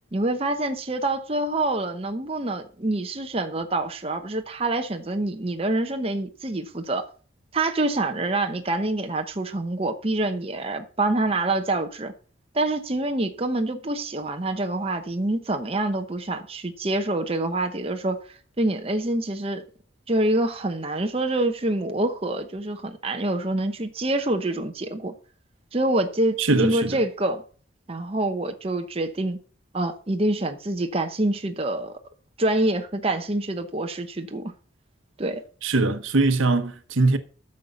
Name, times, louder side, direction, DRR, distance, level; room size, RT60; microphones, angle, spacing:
voice 1, 0.1-7.1 7.5-12.1 12.5-18.2 18.6-19.6 20.1-25.1 25.7-27.4 27.9-29.4 29.7-32.0 32.4-34.5 35.2-35.4, right 2 dB, 30° right, 0.9 m, -26 dB
voice 2, 26.4-27.0 35.6-37.2, right 3 dB, 75° right, 1.0 m, -21 dB
9.3 x 6.6 x 6.9 m
head